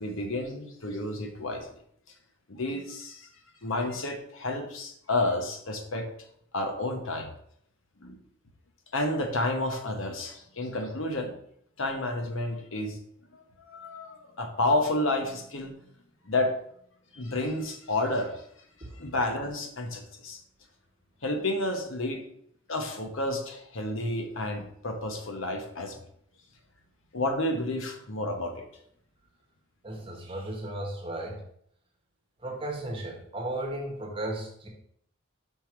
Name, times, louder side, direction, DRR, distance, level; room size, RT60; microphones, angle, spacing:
voice 1, 0.0-1.7 2.5-3.3 3.6-6.1 6.5-7.3 8.0-8.2 8.9-11.3 11.8-13.0 13.3-15.7 16.3-16.6 17.1-18.4 19.0-20.4 21.2-22.2 22.7-26.0 27.1-28.7, left 2 dB, 70° left, 5 dB, 1.0 m, -30 dB
voice 2, 29.8-31.4 32.4-34.7, right 1 dB, 25° right, 0 dB, 1.2 m, -35 dB
5.6 x 4.6 x 4.5 m, 0.67 s
head